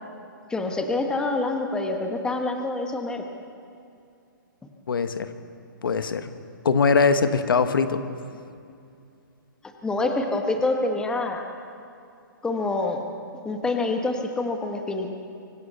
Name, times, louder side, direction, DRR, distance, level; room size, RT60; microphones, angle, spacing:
voice 1, 0.5-3.2 9.8-11.4 12.4-13.0 13.4-15.1, left 2 dB, 5° left, 3 dB, 1.3 m, -26 dB
voice 2, 4.9-5.3 5.8-6.3 6.6-8.0, left 5 dB, 80° left, 10 dB, 1.4 m, -21 dB
25.0 x 15.5 x 6.9 m, 2.5 s
hypercardioid pair, 150°, 11 cm